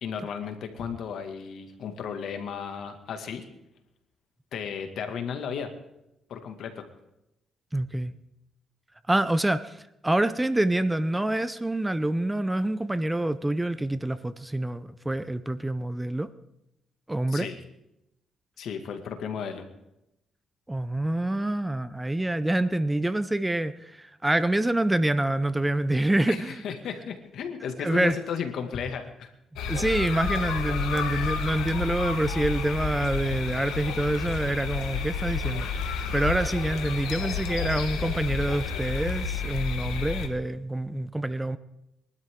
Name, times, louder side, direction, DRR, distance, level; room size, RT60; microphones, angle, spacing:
voice 1, 0.0-3.4 4.5-5.7 6.3-6.9 17.3-17.6 18.6-19.6 26.3-29.3, left 7 dB, 70° left, 6 dB, 2.2 m, -34 dB
voice 2, 7.7-8.1 9.1-16.3 17.1-17.5 20.7-26.6 27.8-28.2 29.7-41.6, right 1 dB, 10° right, 14 dB, 0.7 m, -26 dB
sound 1, 29.6-40.3, left 5 dB, 90° left, 1.5 m, -31 dB
sound 2, 30.1-39.3, right 3 dB, 45° right, 6.1 m, -51 dB
22.5 x 12.0 x 3.8 m, 0.86 s
cardioid pair, 90°, 0 cm